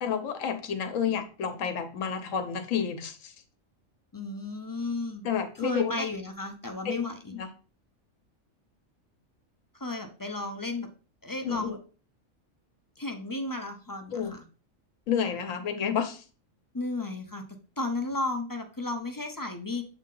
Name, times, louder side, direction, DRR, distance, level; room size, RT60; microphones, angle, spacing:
voice 1, 0.0-3.3 5.2-5.9 6.8-7.0 7.3-7.5 11.4-11.8 14.1-14.3 15.1-16.2, left 7 dB, 75° left, 8 dB, 1.2 m, -30 dB
voice 2, 4.1-5.3 5.5-7.3 9.7-10.9 11.2-11.8 13.0-14.5 16.7-19.8, left 2 dB, 25° left, 4 dB, 0.4 m, -34 dB
7.5 x 3.5 x 3.8 m, 0.37 s
omnidirectional pair, 1.4 m